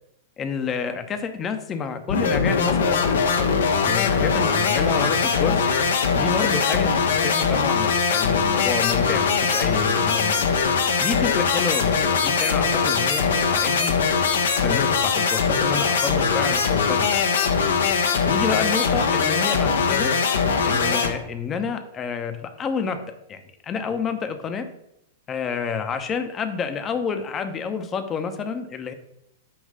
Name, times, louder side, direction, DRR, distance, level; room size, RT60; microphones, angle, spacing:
voice 1, 0.4-3.4 3.9-5.7 6.2-14.0 14.5-17.3 18.2-20.1 20.6-24.7 25.3-28.9, left 6 dB, 25° left, 8 dB, 0.8 m, -29 dB
sound 1, 2.1-21.1, left 5 dB, 65° left, 0.8 m, -21 dB
8.7 x 3.1 x 5.2 m, 0.80 s
figure-of-eight pair, 100°, 0 cm